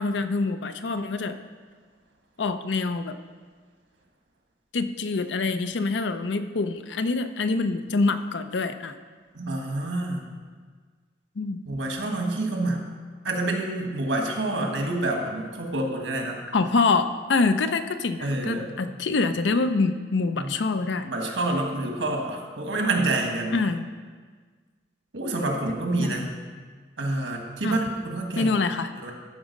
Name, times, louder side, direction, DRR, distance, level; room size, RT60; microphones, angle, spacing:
voice 1, 0.0-1.4 2.4-3.2 4.7-9.0 11.4-11.6 16.5-21.1 23.5-23.9 26.0-26.3 27.6-27.7 28.4-28.9, left 3 dB, 70° left, 10 dB, 0.5 m, -25 dB
voice 2, 9.3-10.2 11.7-12.8 13.2-16.4 18.2-18.7 20.4-20.5 21.0-23.5 25.1-26.3 27.0-28.5 28.9-29.1, right 2 dB, 80° right, 2 dB, 1.4 m, -27 dB
12.5 x 4.9 x 5.2 m, 1.5 s
head